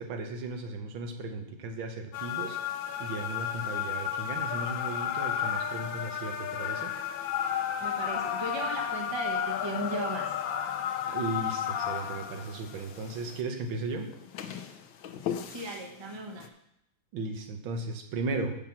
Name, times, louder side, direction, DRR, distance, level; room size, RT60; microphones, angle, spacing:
voice 1, 0.0-2.6 3.0-6.9 11.1-14.1 17.1-18.6, right 3 dB, 80° right, 5 dB, 1.8 m, -36 dB
sound 1, 2.1-13.4 14.1-15.8 16.4-16.5, left 9 dB, 75° left, 1.4 m, -33 dB
voice 2, 7.8-10.3 15.5-16.5, right 2 dB, 20° right, 2 dB, 0.8 m, -36 dB
7.1 x 6.0 x 7.3 m, 0.76 s
omnidirectional pair, 2.2 m